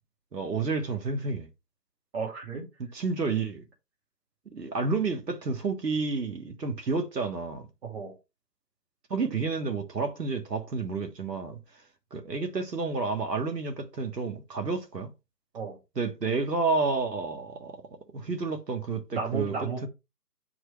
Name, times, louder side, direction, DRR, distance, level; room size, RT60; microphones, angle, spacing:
voice 1, 0.3-1.5 2.9-3.6 4.5-7.7 9.1-11.6 12.1-15.1 15.9-19.9, right 4 dB, 85° right, 1.5 m, -30 dB
voice 2, 2.1-2.7 7.8-8.1 15.5-15.8 19.1-19.9, right 4 dB, 40° right, 2.2 m, -33 dB
7.6 x 4.7 x 3.2 m
figure-of-eight pair, 155°, 47 cm